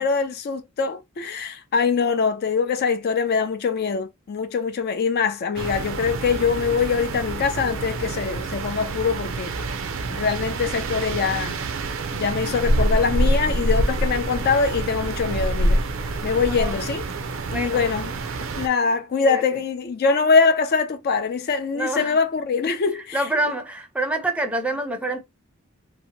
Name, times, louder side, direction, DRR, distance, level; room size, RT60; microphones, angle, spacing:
voice 1, 0.0-9.5 10.1-11.6 12.1-15.8 16.2-17.0 17.5-18.1 18.6-23.2, left 5 dB, 50° left, 0.4 m, -23 dB
sound 1, 5.6-18.7, right 2 dB, 65° right, 0.5 m, -26 dB
voice 2, 16.5-16.8 17.5-17.8 19.2-19.4 21.7-22.2 23.1-25.2, right 1 dB, 5° right, 0.5 m, -26 dB
2.7 x 2.1 x 2.7 m
head